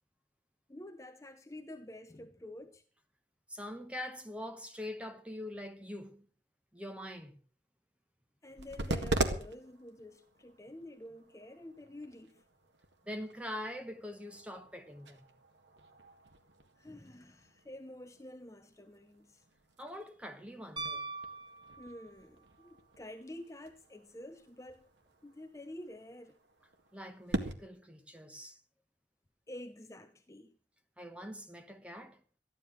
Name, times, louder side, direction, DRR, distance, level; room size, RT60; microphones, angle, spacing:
voice 1, 0.7-2.8 8.4-12.4 16.8-19.4 21.8-24.8 25.2-26.4 29.5-30.6, left 1 dB, 15° left, 0.8 m, -49 dB
voice 2, 3.5-6.3 6.7-7.4 13.0-15.3 19.8-21.0 26.9-28.6 31.0-32.2, left 1 dB, 5° right, 1.3 m, -44 dB
sound 1, 8.4-27.5, right 2 dB, 85° right, 1.9 m, -43 dB
Piano, 20.8-22.3 24.7-24.8, right 3 dB, 25° right, 1.6 m, -42 dB
14.0 x 11.0 x 6.3 m
head